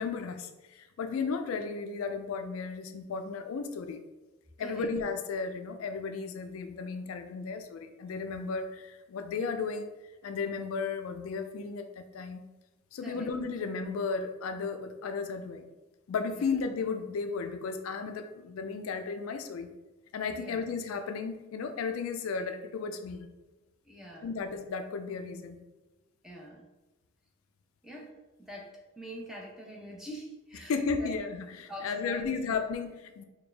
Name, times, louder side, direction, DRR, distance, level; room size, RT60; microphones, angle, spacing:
voice 1, 0.0-4.0 4.6-9.9 10.2-12.4 12.9-15.6 16.1-19.7 20.1-23.3 24.2-25.6 30.6-33.2, left 5 dB, 80° left, 8 dB, 0.3 m, -34 dB
voice 2, 23.9-24.3 26.2-26.7 27.8-28.1 28.4-28.7 29.0-31.1 31.7-32.3, equal, ahead, -3 dB, 0.6 m, -44 dB
4.3 x 2.3 x 3.3 m, 1.1 s
head